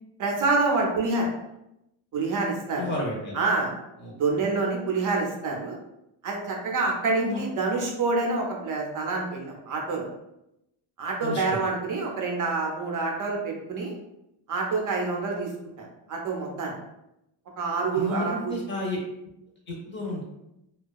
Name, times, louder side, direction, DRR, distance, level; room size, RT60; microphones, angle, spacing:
voice 1, 0.2-1.3 2.1-3.0 3.3-3.7 4.2-5.7 6.2-10.1 11.0-13.9 14.5-15.5 15.8-16.7 17.6-18.5, right 3 dB, 40° right, 0 dB, 0.5 m, -27 dB
voice 2, 2.7-3.4 4.0-4.1 7.2-7.4 11.2-11.6 17.9-19.0 19.7-20.2, left 1 dB, 25° left, -3 dB, 0.6 m, -32 dB
2.6 x 2.2 x 2.3 m, 0.85 s
cardioid pair, 175°, 50 cm